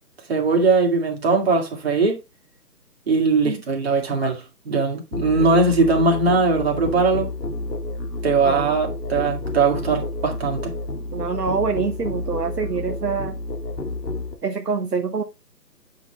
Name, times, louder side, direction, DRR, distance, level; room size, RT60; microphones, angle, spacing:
voice 1, 0.3-2.2 3.1-7.3 8.2-10.7, right 4 dB, 35° right, 2.5 m, -20 dB
Musical instrument, 5.1-14.3, left 2 dB, 75° left, 2.2 m, -30 dB
voice 2, 11.1-13.4 14.4-15.2, right 5 dB, 70° right, 1.2 m, -25 dB
8.9 x 6.1 x 3.5 m
figure-of-eight pair, 150°, 50 cm